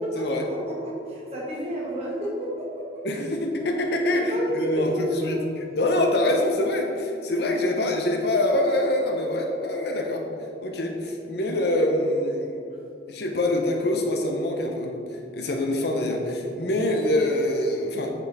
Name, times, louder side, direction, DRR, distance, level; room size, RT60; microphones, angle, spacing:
voice 1, 0.0-3.1 4.1-5.4 12.7-12.8, equal, 30° right, -5 dB, 1.5 m, -31 dB
voice 2, 3.0-5.4 5.8-10.2 10.6-12.5 13.1-18.1, left 1 dB, 55° left, 2 dB, 0.7 m, -25 dB
8.0 x 4.2 x 3.5 m, 2.6 s
head